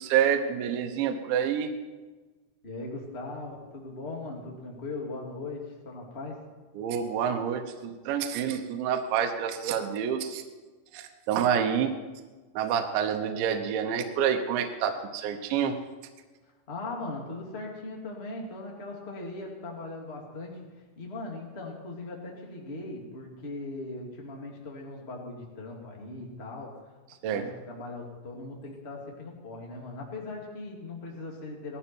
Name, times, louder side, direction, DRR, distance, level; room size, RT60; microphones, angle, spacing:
voice 1, 0.0-1.7 6.8-10.4 10.9-11.9 12.5-15.8 27.2-27.4, right 8 dB, 75° right, 5 dB, 3.1 m, -28 dB
voice 2, 2.6-6.4 16.7-20.7 20.9-26.8 27.2-31.8, left 2 dB, 25° left, 0 dB, 1.4 m, -39 dB
18.5 x 14.0 x 4.5 m, 1.3 s
omnidirectional pair, 5.5 m